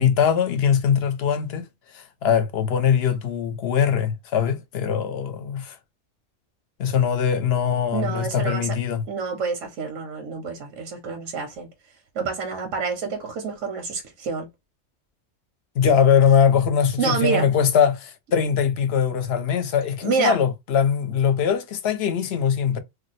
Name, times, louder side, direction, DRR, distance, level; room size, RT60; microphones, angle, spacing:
voice 1, 0.0-1.6 1.9-5.8 6.8-9.0 15.8-22.8, left 7 dB, 65° left, 0.7 m, -21 dB
voice 2, 7.9-8.8 9.1-11.7 12.1-14.5 17.0-17.5 20.0-20.4, right 5 dB, 85° right, 1.1 m, -27 dB
2.5 x 2.0 x 3.9 m
omnidirectional pair, 1.3 m